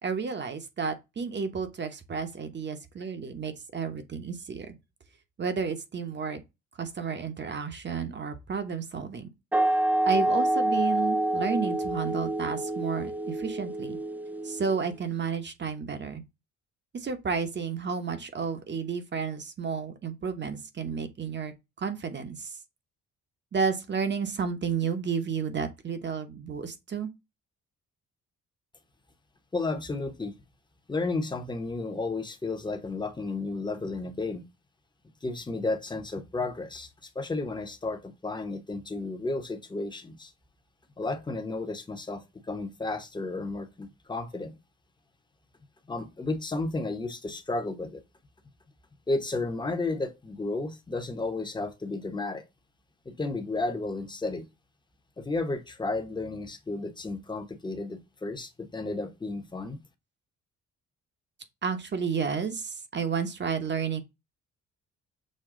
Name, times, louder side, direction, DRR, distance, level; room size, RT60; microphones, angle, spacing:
voice 1, 0.0-4.8 5.4-6.4 6.8-9.3 10.1-14.0 14.4-16.2 16.9-21.5 21.8-22.5 23.5-27.1 61.6-64.0, right 6 dB, 35° right, 1.0 m, -31 dB
sound 1, 9.5-14.9, right 1 dB, 5° right, 0.3 m, -27 dB
voice 2, 29.5-30.3 30.9-34.4 35.2-36.9 37.1-40.3 41.0-44.5 45.9-48.0 49.1-52.4 53.0-54.5 55.2-59.8, left 3 dB, 15° left, 0.9 m, -32 dB
6.5 x 2.3 x 3.7 m
cardioid pair, 90°, 30 cm